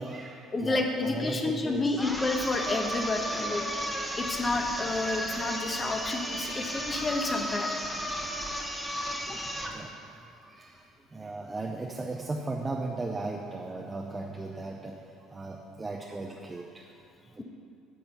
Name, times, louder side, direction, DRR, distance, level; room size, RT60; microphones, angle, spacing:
voice 1, 0.0-2.0 3.3-3.7 6.5-6.6 8.7-9.4 9.7-9.9 10.2-10.9 11.1-15.0 15.3-16.8 17.3-17.4, right 2 dB, 20° right, 1 dB, 0.7 m, -37 dB
voice 2, 0.5-3.6 4.2-7.7 9.3-9.4, left 2 dB, 25° left, 3 dB, 1.1 m, -30 dB
sound 1, 2.0-9.8, equal, ahead, 1.1 m, -34 dB
10.0 x 6.3 x 5.6 m, 2.5 s
supercardioid pair, 95°, 0 cm